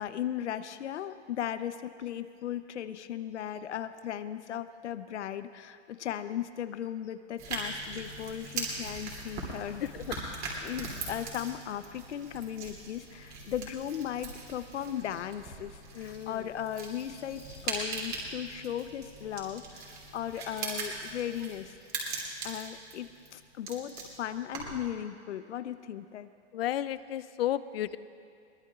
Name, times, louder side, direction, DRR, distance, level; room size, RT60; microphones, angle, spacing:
voice 1, 0.0-9.9 10.1-10.3 10.6-21.7 22.4-26.3, left 10 dB, 85° left, 11 dB, 0.8 m, -37 dB
sound 1, 7.4-24.9, right 3 dB, 25° right, 2.9 m, -40 dB
voice 2, 9.8-10.2 15.9-16.5 26.5-28.0, left 12 dB, 60° left, 15 dB, 0.6 m, -33 dB
22.5 x 19.5 x 2.4 m, 2.5 s
hypercardioid pair, 160°, 34 cm